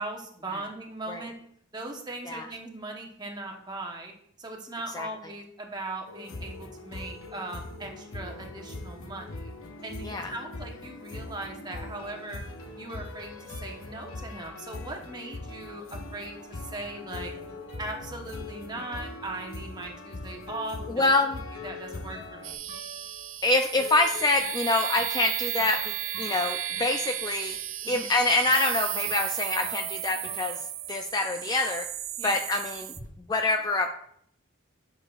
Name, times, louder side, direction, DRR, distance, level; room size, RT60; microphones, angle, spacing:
voice 1, 0.0-1.3 1.7-4.1 4.4-9.5 9.8-12.4 12.8-17.3 17.8-21.1 21.6-22.6 27.8-28.1 32.2-32.4, right 2 dB, 20° right, 1 dB, 1.0 m, -39 dB
sound 1, 6.1-22.5, left 2 dB, 90° left, 0.9 m, -41 dB
sound 2, 16.5-31.3 31.6-33.1, left 4 dB, 65° left, 3.1 m, -46 dB
voice 2, 21.0-21.4 23.4-27.6 27.9-30.6 30.9-31.9 32.2-32.9 33.3-33.9, left 2 dB, 20° left, 5 dB, 0.3 m, -26 dB
sound 3, 22.4-33.0, right 13 dB, 75° right, 0.4 m, -34 dB
9.9 x 6.3 x 2.4 m, 0.68 s
head